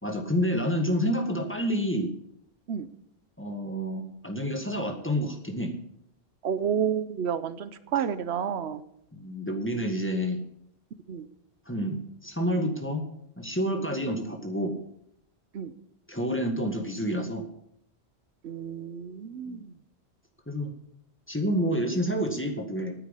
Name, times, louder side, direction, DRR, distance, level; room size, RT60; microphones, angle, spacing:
voice 1, 0.0-2.1 3.4-5.7 9.1-10.4 11.7-13.1 13.4-14.7 16.1-17.5 19.5-19.6 20.5-20.7 21.3-23.0, equal, 10° left, 4 dB, 1.8 m, -29 dB
voice 2, 6.4-8.8 11.1-11.3 13.7-13.8 15.5-15.7 18.4-19.7 21.6-21.7, right 8 dB, 85° right, 14 dB, 1.0 m, -30 dB
9.4 x 9.0 x 8.3 m, 0.75 s
omnidirectional pair, 1.1 m